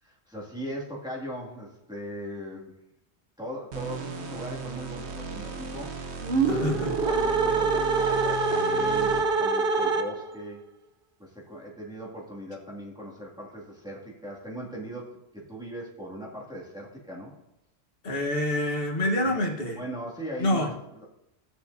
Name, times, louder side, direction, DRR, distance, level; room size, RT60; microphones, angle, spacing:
voice 1, 0.0-2.8 3.4-5.9 6.4-10.6 11.2-17.3 19.2-19.4 19.7-21.0, equal, 5° right, 2.3 m, -39 dB
sound 1, 3.7-9.5, right 5 dB, 75° right, 1.2 m, -36 dB
sound 2, 6.2-10.4, right 4 dB, 55° right, 0.9 m, -25 dB
voice 2, 6.5-6.9 18.0-19.8 20.4-20.7, left 1 dB, 60° left, 1.5 m, -27 dB
17.0 x 6.7 x 2.7 m
omnidirectional pair, 1.1 m